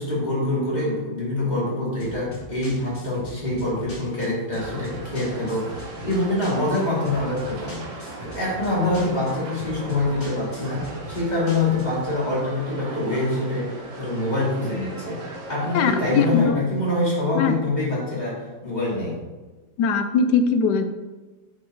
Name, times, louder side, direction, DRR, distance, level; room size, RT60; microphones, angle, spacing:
voice 1, 0.0-15.2 15.5-19.2, left 2 dB, 20° left, -7 dB, 2.9 m, -25 dB
sound 1, 2.0-12.1, right 1 dB, 45° left, 2.3 m, -41 dB
sound 2, 4.5-16.4, right 2 dB, 45° right, 1.4 m, -39 dB
voice 2, 15.7-16.6 17.3-17.6 19.8-20.9, left 5 dB, 70° left, 8 dB, 1.1 m, -21 dB
9.4 x 6.4 x 3.1 m, 1.2 s
omnidirectional pair, 2.1 m